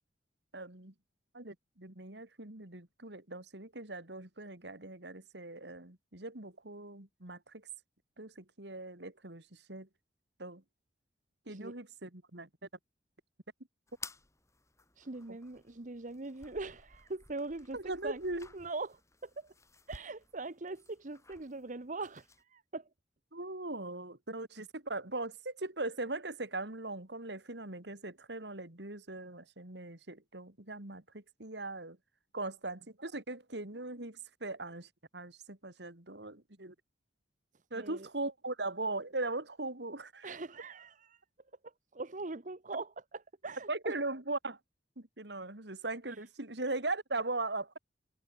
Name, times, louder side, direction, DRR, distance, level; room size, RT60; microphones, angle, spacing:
voice 1, 0.5-0.9 1.3-7.7 8.2-9.9 10.4-10.6 11.5-12.5 15.3-15.4 17.7-18.5 23.3-32.0 32.3-36.7 37.7-40.4 43.7-44.6 45.0-47.8, right 2 dB, 70° right, 3.2 m, -40 dB
sound 1, 13.9-22.4, left 4 dB, 15° left, 3.5 m, -55 dB
voice 2, 15.0-17.8 18.0-18.2 18.5-19.5 19.9-22.9 37.7-38.1 40.2-41.2 41.6-43.9, right 3 dB, 45° right, 1.1 m, -42 dB
head